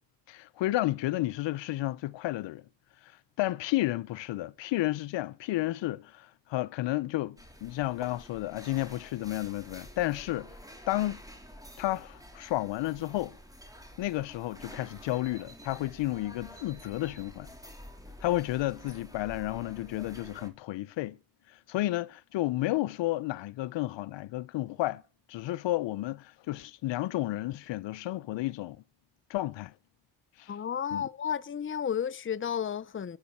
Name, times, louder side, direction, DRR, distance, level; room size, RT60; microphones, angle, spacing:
voice 1, 0.3-2.6 3.0-3.1 3.4-10.5 10.9-11.2 11.8-13.4 14.0-17.5 18.2-21.2 21.7-25.0 25.3-28.8 29.3-29.7 30.4-30.5 30.9-31.1, left 16 dB, 75° left, 0.7 m, -32 dB
sound 1, 7.4-20.5, equal, 10° right, 3.8 m, -49 dB
voice 2, 30.5-33.2, left 8 dB, 30° left, 0.7 m, -32 dB
21.0 x 10.5 x 4.2 m
supercardioid pair, 50°, 44 cm